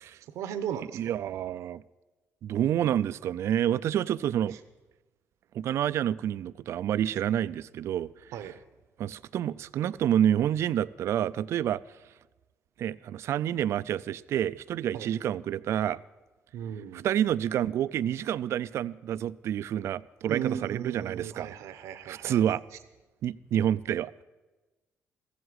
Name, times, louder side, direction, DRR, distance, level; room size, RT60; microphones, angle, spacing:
voice 1, 0.2-1.2 4.5-4.6 8.3-8.6 14.9-15.1 16.5-17.1 20.3-22.4, right 9 dB, 85° right, 0.8 m, -36 dB
voice 2, 0.9-1.8 2.4-4.6 5.5-8.1 9.0-11.8 12.8-16.0 17.0-21.5 22.1-22.6 23.2-24.1, right 10 dB, 65° right, 0.4 m, -28 dB
15.0 x 8.0 x 9.7 m
cardioid pair, 95°, 5 cm